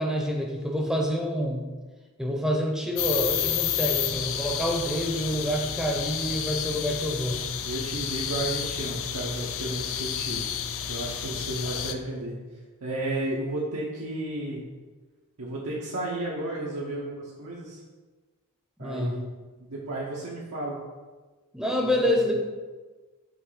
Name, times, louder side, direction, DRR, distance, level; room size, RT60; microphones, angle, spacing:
voice 1, 0.0-1.7 2.2-7.4 18.8-19.2 21.5-22.3, equal, ahead, 1 dB, 0.6 m, -27 dB
sound 1, 3.0-11.9, left 9 dB, 65° left, 0.4 m, -30 dB
voice 2, 7.6-10.6 10.9-12.3 12.8-14.6 15.4-17.8 18.8-19.2 19.6-20.8 22.2-22.3, right 1 dB, 90° right, -4 dB, 0.9 m, -33 dB
6.1 x 3.2 x 4.9 m, 1.3 s
head